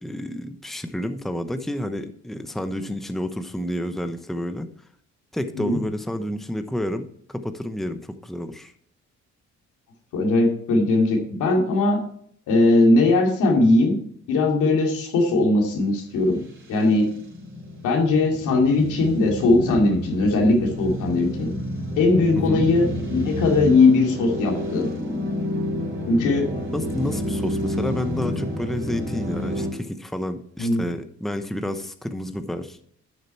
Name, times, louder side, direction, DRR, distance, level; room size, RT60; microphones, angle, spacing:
voice 1, 0.0-4.7 5.3-8.7 22.3-22.7 26.7-32.8, left 1 dB, ahead, 8 dB, 0.9 m, -30 dB
voice 2, 10.1-12.0 12.5-14.0 14.3-16.4 16.7-17.1 17.8-21.5 22.0-24.9 26.1-26.5 30.6-30.8, left 2 dB, 90° left, 0 dB, 2.8 m, -19 dB
sound 1, 16.4-29.7, left 1 dB, 40° right, 4.5 m, -30 dB
11.5 x 6.6 x 4.5 m, 0.62 s
cardioid pair, 90°, 30 cm